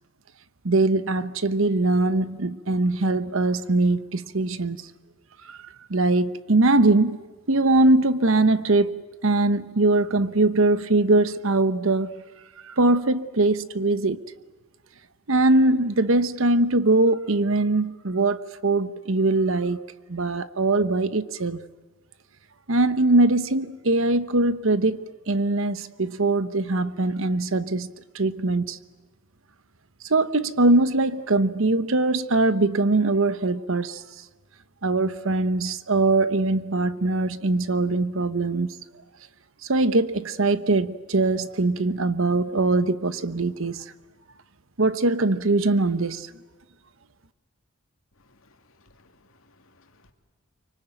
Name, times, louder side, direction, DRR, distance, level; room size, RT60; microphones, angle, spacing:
voice 1, 0.6-4.8 5.5-5.6 5.9-7.2 7.5-8.9 9.2-12.2 12.6-14.2 15.3-19.8 20.1-21.6 22.7-28.8 30.0-34.0 34.8-38.8 39.7-43.8 44.8-46.3, right 2 dB, 70° right, 1.0 m, -22 dB
voice 2, 48.2-50.1, left 2 dB, 75° left, 2.6 m, -60 dB
25.0 x 24.5 x 9.1 m
head